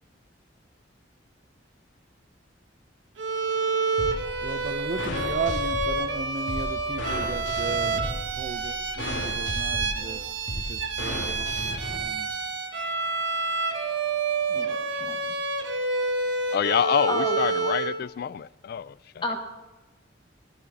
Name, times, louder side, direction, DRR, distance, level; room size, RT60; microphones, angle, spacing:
Bowed string instrument, 3.2-18.0, right 4 dB, 75° right, 1.3 m, -29 dB
sound 1, 4.0-12.0, left 1 dB, 90° left, 1.9 m, -35 dB
voice 1, 4.4-12.3, right 4 dB, 45° right, 0.6 m, -36 dB
voice 2, 14.5-15.2 17.1-17.4 19.2-19.4, left 2 dB, 25° left, 1.3 m, -31 dB
voice 3, 16.5-19.0, left 8 dB, 55° left, 0.3 m, -26 dB
15.5 x 13.5 x 4.1 m
head